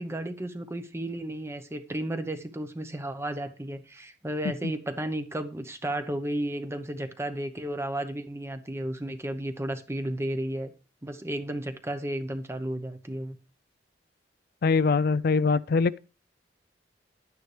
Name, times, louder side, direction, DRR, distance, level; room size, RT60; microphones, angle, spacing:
voice 1, 0.0-10.7 11.0-13.4, right 1 dB, 15° right, 0.9 m, -33 dB
voice 2, 14.6-16.0, left 4 dB, 60° left, 0.4 m, -23 dB
11.5 x 9.4 x 3.3 m
head